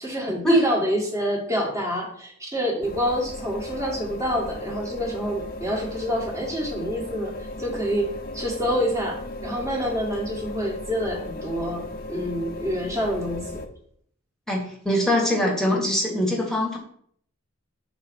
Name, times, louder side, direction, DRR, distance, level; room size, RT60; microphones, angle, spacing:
voice 1, 0.0-13.7, equal, 15° right, -2 dB, 1.8 m, -27 dB
sound 1, 2.8-13.7, left 1 dB, 45° left, 0.8 m, -36 dB
voice 2, 14.5-16.8, left 1 dB, ahead, -2 dB, 1.7 m, -22 dB
5.9 x 4.1 x 6.2 m, 0.62 s
head